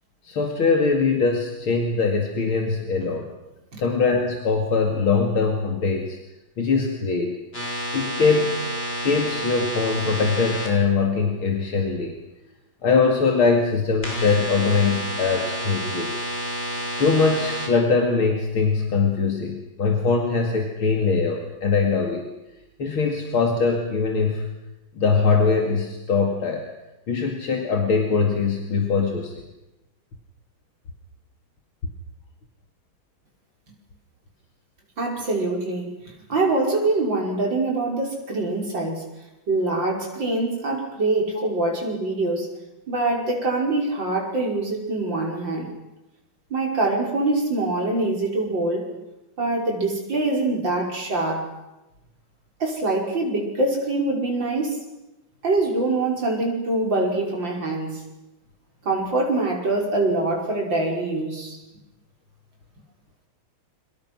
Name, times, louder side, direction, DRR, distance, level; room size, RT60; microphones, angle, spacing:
voice 1, 0.2-3.3 3.8-6.2 6.6-7.4 7.9-12.2 12.8-16.1 17.0-22.3 22.8-24.5 24.9-26.7 27.1-29.3, left 4 dB, 80° left, 2 dB, 3.1 m, -22 dB
sound 1, 7.5-10.7 14.0-17.7, equal, 25° left, 5.9 m, -29 dB
voice 2, 35.0-36.0 36.3-39.0 39.5-42.5 42.9-45.7 46.5-48.9 49.4-51.5 52.6-54.8 55.4-58.0 58.8-61.6, right 2 dB, 60° right, 0 dB, 6.2 m, -24 dB
29.0 x 24.0 x 6.3 m, 0.99 s
omnidirectional pair, 2.3 m